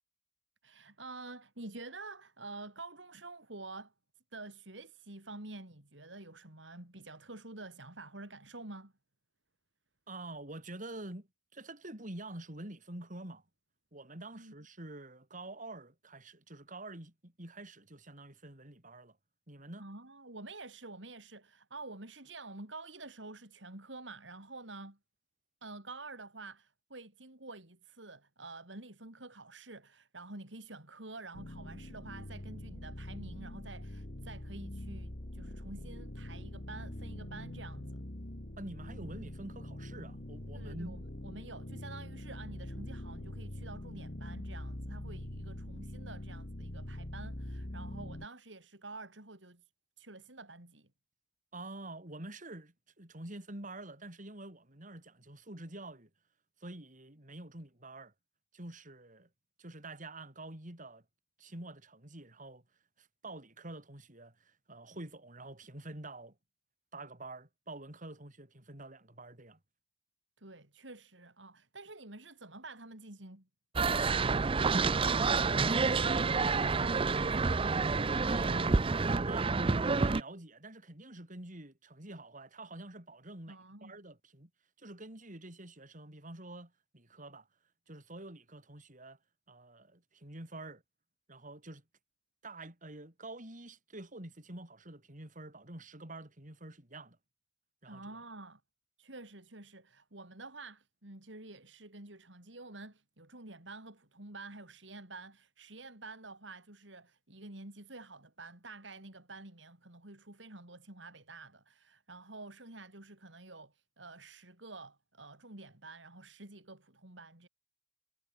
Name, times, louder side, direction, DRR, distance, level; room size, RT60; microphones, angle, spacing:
voice 1, 0.6-3.9 4.3-8.9 14.4-14.5 19.8-25.0 25.6-38.0 40.5-49.6 50.0-50.9 70.4-73.5 73.8-74.7 75.0-77.8 83.5-84.0 97.9-98.6 99.0-117.5, right 2 dB, 90° right, 4.8 m, -49 dB
voice 2, 10.1-13.4 13.9-19.2 19.5-19.9 38.6-41.0 51.5-56.1 56.6-58.1 58.5-59.3 59.6-61.0 61.4-62.6 63.0-66.3 66.9-69.6 78.3-79.0 79.2-84.5 84.8-87.5 87.9-89.2 89.5-90.8 91.3-91.8 92.4-97.2 97.8-98.1, right 2 dB, 45° right, 5.0 m, -47 dB
sound 1, 31.3-48.3, left 1 dB, 50° left, 2.2 m, -43 dB
sound 2, 73.8-80.2, right 4 dB, 30° right, 0.5 m, -28 dB
head